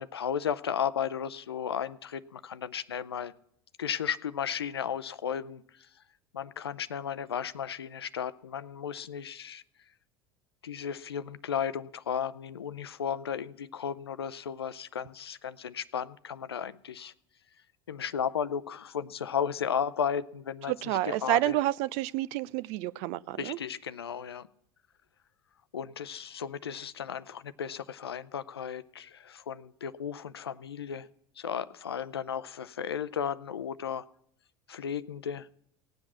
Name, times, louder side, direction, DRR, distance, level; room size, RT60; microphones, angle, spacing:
voice 1, 0.0-3.3 3.8-5.9 6.3-9.6 10.6-17.1 17.9-21.6 23.4-24.5 25.7-31.1 31.4-34.1 34.7-35.5, left 8 dB, 80° left, 14 dB, 0.6 m, -34 dB
voice 2, 20.7-23.6, right 16 dB, 55° right, 19 dB, 0.5 m, -29 dB
18.0 x 7.9 x 7.1 m, 0.71 s
figure-of-eight pair, 75°, 13 cm